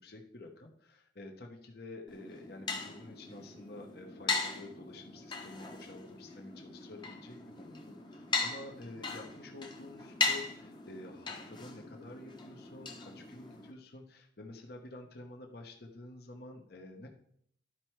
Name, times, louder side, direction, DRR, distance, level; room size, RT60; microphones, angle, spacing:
voice 1, 0.0-17.1, left 2 dB, 55° left, 3 dB, 1.0 m, -49 dB
sound 1, 2.1-13.7, left 3 dB, 25° left, 0.9 m, -39 dB
12.0 x 4.5 x 4.6 m, 0.68 s
head